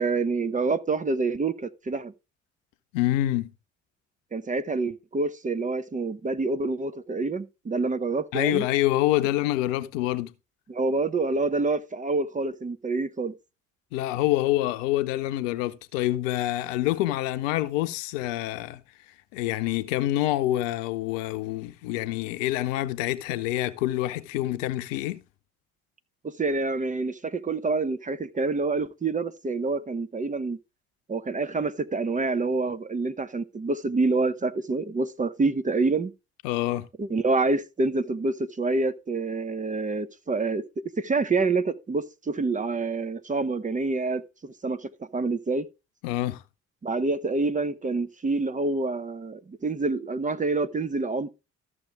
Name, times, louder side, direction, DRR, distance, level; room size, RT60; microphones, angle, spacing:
voice 1, 0.0-2.1 4.3-8.6 10.7-13.3 26.2-30.6 31.1-36.1 37.0-40.6 41.0-45.7 46.8-51.3, right 3 dB, 20° right, 0.8 m, -27 dB
voice 2, 2.9-3.5 8.3-10.3 13.9-18.8 19.3-25.2 36.4-36.9 46.0-46.4, left 15 dB, 65° left, 0.8 m, -26 dB
13.5 x 6.6 x 3.5 m
figure-of-eight pair, 50°, 41 cm